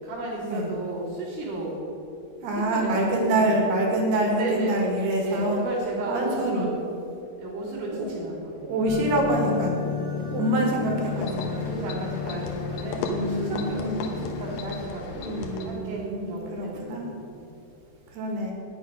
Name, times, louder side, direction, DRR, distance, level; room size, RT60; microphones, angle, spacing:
voice 1, 0.0-1.8 2.7-3.5 4.1-4.8 5.3-6.7 7.4-8.7 11.4-13.0 13.3-17.0, right 1 dB, 60° right, -12 dB, 3.8 m, -33 dB
voice 2, 2.4-5.6 6.1-6.7 7.9-8.1 8.6-9.9 10.3-11.9 13.1-14.1 15.1-17.1 18.1-18.5, right 1 dB, 80° right, 0 dB, 3.6 m, -26 dB
sound 1, 8.9-14.8, left 6 dB, 55° left, 2.1 m, -33 dB
sound 2, 11.0-15.9, left 3 dB, 80° left, 2.9 m, -36 dB
9.4 x 8.4 x 6.2 m, 2.8 s
omnidirectional pair, 4.6 m